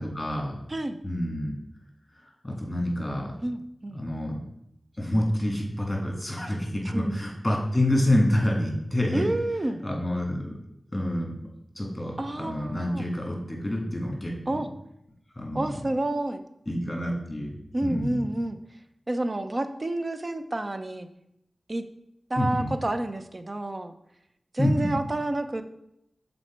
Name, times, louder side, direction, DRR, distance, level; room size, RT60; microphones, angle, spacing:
voice 1, 0.0-0.6 1.0-1.5 2.2-3.3 3.9-4.4 5.0-9.2 9.8-10.6 10.9-11.3 11.8-14.3 15.4-15.7 16.7-17.6 17.8-18.2 22.4-22.7 24.6-25.0, left 1 dB, 20° left, -1 dB, 1.9 m, -27 dB
voice 2, 3.4-4.0 6.8-7.2 9.1-9.8 12.2-13.1 14.5-14.7 15.5-16.4 17.7-18.6 19.1-21.1 21.7-21.8 22.3-23.9 24.5-25.6, right 1 dB, 40° right, 9 dB, 0.5 m, -29 dB
6.4 x 4.2 x 4.5 m, 0.80 s
wide cardioid pair, 65°, 0 cm